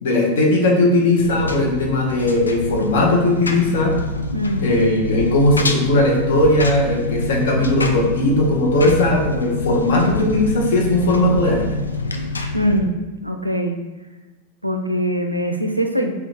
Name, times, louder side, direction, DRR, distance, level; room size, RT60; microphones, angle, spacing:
voice 1, 0.0-3.9 4.6-11.8, left 1 dB, 55° left, 0 dB, 0.8 m, -18 dB
Engine, 1.2-12.8, left 2 dB, 75° left, 0.3 m, -26 dB
voice 2, 4.3-4.7 12.5-12.9 13.2-13.8 14.6-16.1, equal, 90° right, 4 dB, 0.3 m, -22 dB
3.6 x 2.3 x 4.4 m, 1.2 s
figure-of-eight pair, 90°, 0 cm